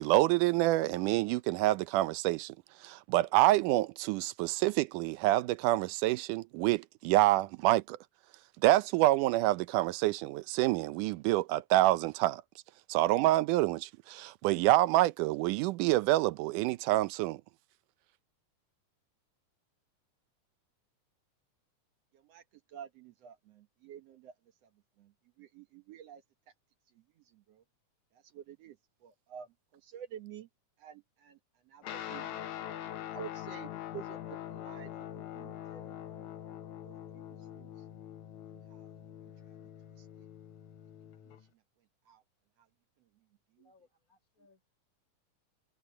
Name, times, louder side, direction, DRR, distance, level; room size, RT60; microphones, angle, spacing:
voice 1, 0.0-2.6 2.8-8.0 8.6-12.4 12.9-17.4, right 16 dB, 80° right, 2.2 m, -27 dB
voice 2, 22.7-24.3 25.0-25.1 25.4-26.2 28.3-28.8 29.0-29.5 29.8-30.5 30.8-31.4 31.7-32.3 33.1-34.2 34.5-34.9 35.3-36.0 36.9-37.0 37.5-37.7 42.1-42.2, right 9 dB, 65° right, 1.9 m, -48 dB
Guitar, 31.8-41.5, left 11 dB, 70° left, 2.4 m, -44 dB
voice 3, 43.6-44.7, left 3 dB, 25° left, 6.7 m, -67 dB
omnidirectional pair, 3.7 m